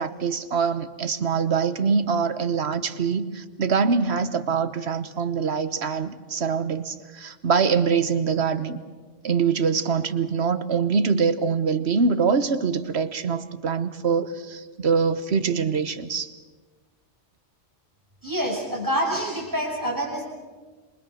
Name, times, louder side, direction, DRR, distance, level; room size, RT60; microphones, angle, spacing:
voice 1, 0.0-8.8 9.2-16.3, right 5 dB, 60° right, 11 dB, 1.4 m, -24 dB
voice 2, 18.2-20.2, equal, 15° right, -2 dB, 7.0 m, -26 dB
27.5 x 24.0 x 6.4 m, 1.4 s
omnidirectional pair, 1.2 m